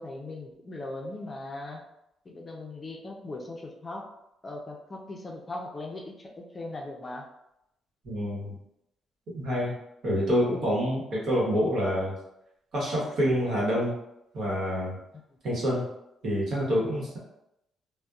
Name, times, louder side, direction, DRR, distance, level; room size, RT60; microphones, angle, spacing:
voice 1, 0.0-1.8 2.3-4.1 4.4-7.3, left 2 dB, 30° left, 1 dB, 0.4 m, -39 dB
voice 2, 8.0-8.6 9.3-9.7 10.0-12.1 12.7-13.9 14.3-15.0 15.4-15.9 16.2-17.2, equal, 65° right, -5 dB, 1.0 m, -27 dB
2.5 x 2.1 x 2.3 m, 0.84 s
cardioid pair, 90°, 0 cm